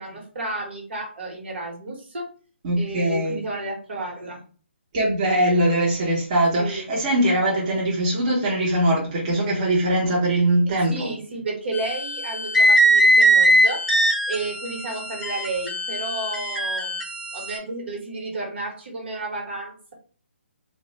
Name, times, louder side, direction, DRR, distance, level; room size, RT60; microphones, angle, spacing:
voice 1, 0.0-2.3 2.7-4.4 6.6-6.8 10.9-13.8 14.3-17.0 17.3-19.9, right 2 dB, 65° right, 0 dB, 1.1 m, -32 dB
voice 2, 2.6-3.4 4.9-11.1, right 1 dB, 35° right, -5 dB, 0.7 m, -21 dB
sound 1, 11.7-17.6, right 1 dB, ahead, 0.6 m, -20 dB
2.3 x 2.1 x 2.8 m, 0.41 s
hypercardioid pair, 155°, 7 cm